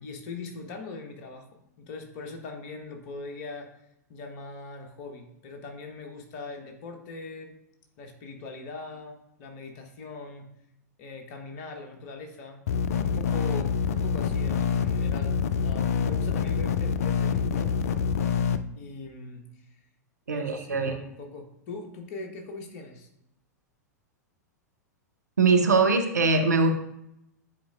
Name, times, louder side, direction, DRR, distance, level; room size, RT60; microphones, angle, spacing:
voice 1, 0.0-3.7 4.1-7.5 8.0-10.5 11.0-12.6 13.0-15.3 15.6-17.7 18.7-19.4 20.3-23.1, left 3 dB, 45° left, 3 dB, 1.2 m, -41 dB
sound 1, 12.7-18.6, left 6 dB, 60° left, 0.4 m, -26 dB
voice 2, 20.3-20.9 25.4-26.7, right 4 dB, 75° right, 5 dB, 0.8 m, -22 dB
9.5 x 4.2 x 2.5 m, 0.79 s
figure-of-eight pair, 95°, 9 cm